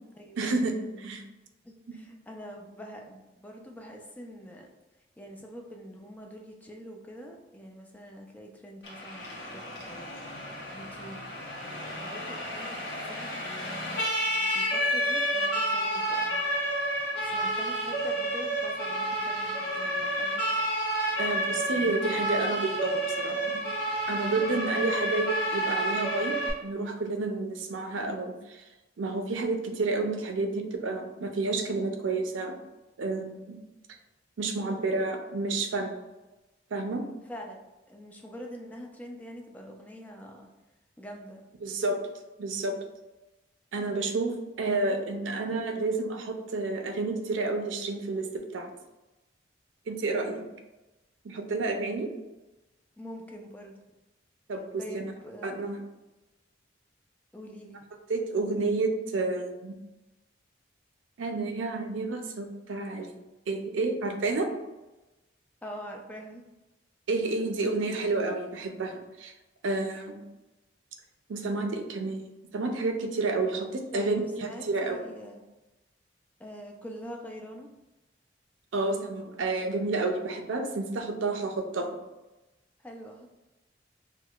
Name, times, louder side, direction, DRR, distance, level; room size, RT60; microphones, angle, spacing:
voice 1, 0.4-1.2 21.2-23.6 24.1-26.3 26.6-28.7 29.0-32.6 33.0-33.6 34.4-35.9 36.7-37.0 41.6-42.0 42.4-42.8 43.7-48.7 49.9-50.4 51.2-52.1 54.5-55.1 55.4-55.8 58.1-59.7 61.2-63.1 63.5-64.5 67.1-69.3 69.6-70.2 71.3-72.2 72.5-75.0 78.7-82.0, right 3 dB, 85° right, 5 dB, 0.5 m, -30 dB
voice 2, 1.6-4.7 5.2-11.2 11.6-13.4 14.3-16.4 17.2-20.4 21.5-21.9 24.1-24.4 37.2-37.6 37.9-40.5 41.0-41.5 50.1-50.5 53.0-53.7 54.8-55.5 57.3-57.8 65.6-66.4 73.9-75.4 76.4-77.7 82.8-83.3, equal, 10° left, 1 dB, 0.4 m, -45 dB
Siren, 8.8-26.5, right 1 dB, 60° left, 0.9 m, -30 dB
4.5 x 2.1 x 2.3 m, 1.0 s
head